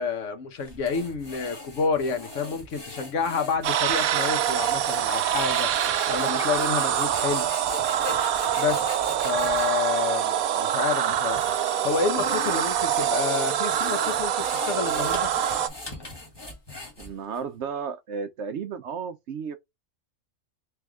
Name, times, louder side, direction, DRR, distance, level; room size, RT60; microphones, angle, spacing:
voice 1, 0.0-7.5 8.6-8.8 9.2-11.5 11.8-15.3, left 5 dB, 65° left, 1.1 m, -29 dB
sound 1, 0.6-9.7 10.4-10.5 11.1-17.4, left 2 dB, 20° left, 1.2 m, -40 dB
sound 2, 3.6-15.7, right 10 dB, 90° right, 1.1 m, -25 dB
voice 2, 17.0-19.5, right 6 dB, 65° right, 0.8 m, -33 dB
3.4 x 3.2 x 3.5 m
omnidirectional pair, 1.4 m